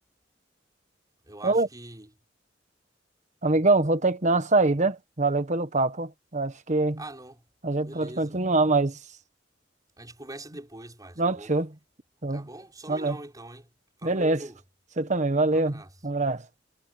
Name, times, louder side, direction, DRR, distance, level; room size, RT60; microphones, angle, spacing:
voice 1, 1.3-2.1 7.0-7.4 7.8-8.3 10.0-11.5 12.3-13.7 14.0-14.6 15.5-15.9, right 1 dB, 20° right, 6.1 m, -43 dB
voice 2, 3.4-7.0 7.6-9.0 11.2-11.7 12.2-12.5 12.9-13.2 14.0-14.4 15.0-16.4, right 2 dB, 40° right, 1.4 m, -24 dB
head